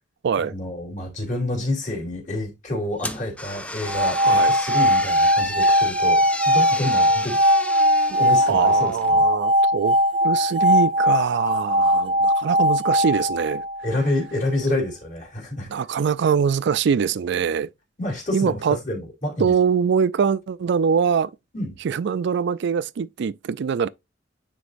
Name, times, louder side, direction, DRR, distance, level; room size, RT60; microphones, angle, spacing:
voice 1, 0.4-6.2 6.4-7.4 7.9-9.2 13.8-15.7 18.0-19.5 21.5-21.8, left 1 dB, 45° left, 2.9 m, -28 dB
sound 1, 3.0-9.1, left 1 dB, 5° left, 0.5 m, -34 dB
sound 2, 3.8-14.0, equal, 30° right, 0.7 m, -19 dB
voice 2, 4.2-4.5 8.1-8.2 8.5-10.0 10.2-13.6 15.7-17.7 18.3-18.8 19.4-21.3 21.8-23.9, right 6 dB, 65° right, 0.4 m, -23 dB
9.5 x 4.1 x 2.5 m
head